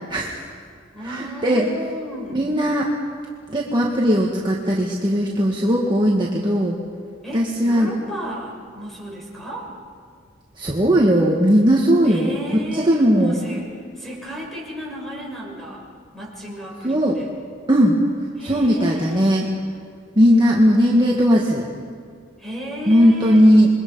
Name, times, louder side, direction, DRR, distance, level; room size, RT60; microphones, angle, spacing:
voice 1, 0.1-0.5 1.0-1.7 2.3-2.9 3.5-6.8 7.3-7.9 10.6-12.4 12.7-13.3 16.8-17.2 17.7-18.0 18.4-19.5 20.2-21.6 22.9-23.7, equal, 25° right, -3 dB, 1.8 m, -17 dB
voice 2, 0.9-2.4 7.2-9.7 12.0-15.9 16.1-17.3 18.4-19.4 22.4-23.5, equal, ahead, -3 dB, 6.1 m, -33 dB
27.0 x 22.5 x 5.6 m, 2.1 s
head